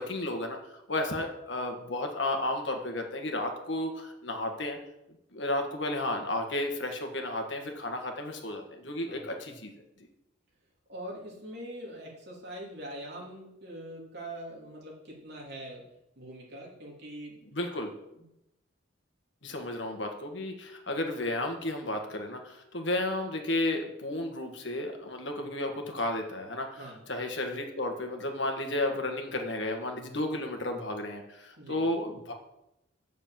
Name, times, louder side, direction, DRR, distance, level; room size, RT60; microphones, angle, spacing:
voice 1, 0.0-4.8 5.3-9.7 17.5-17.9 19.4-26.8 27.1-32.3, left 1 dB, 65° left, 4 dB, 1.6 m, -33 dB
voice 2, 10.9-15.8 16.1-17.5 18.1-18.2 26.8-27.0 31.6-31.8, right 1 dB, 55° right, -3 dB, 3.0 m, -43 dB
8.1 x 6.4 x 7.6 m, 0.85 s
head